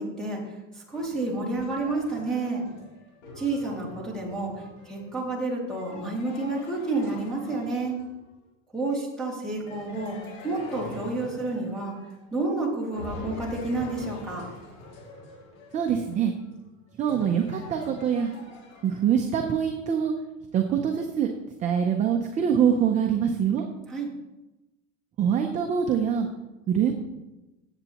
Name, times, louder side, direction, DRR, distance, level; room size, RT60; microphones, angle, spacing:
voice 1, 0.0-2.7 3.4-8.0 8.7-10.2 10.4-12.0 12.3-14.5 23.9-24.1, right 2 dB, ahead, -3 dB, 2.3 m, -30 dB
sound 1, 0.9-8.3 9.7-12.5 12.9-19.4, left 2 dB, 90° left, 3.6 m, -45 dB
voice 2, 15.7-16.3 17.0-18.3 18.8-20.1 20.5-21.3 21.6-23.6 25.2-26.3 26.7-27.0, right 8 dB, 20° right, 3 dB, 0.5 m, -24 dB
15.0 x 8.0 x 2.9 m, 1.0 s
supercardioid pair, 160°, 39 cm